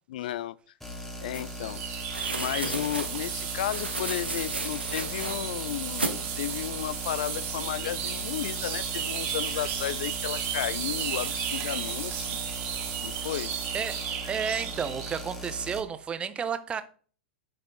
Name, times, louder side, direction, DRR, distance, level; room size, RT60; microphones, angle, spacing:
voice 1, 0.1-0.6 1.2-1.8 2.4-12.4 13.0-13.5, left 13 dB, 55° left, 0.3 m, -33 dB
sound 1, 0.8-15.8, equal, 5° left, 1.7 m, -39 dB
sound 2, 1.3-1.4 2.1-3.1 3.6-5.4 6.0-6.2, right 2 dB, 90° right, 1.4 m, -33 dB
sound 3, 1.4-15.3, right 9 dB, 40° right, 1.9 m, -34 dB
voice 2, 13.7-16.8, right 7 dB, 20° right, 0.8 m, -32 dB
9.1 x 5.6 x 3.8 m
figure-of-eight pair, 100°, 6 cm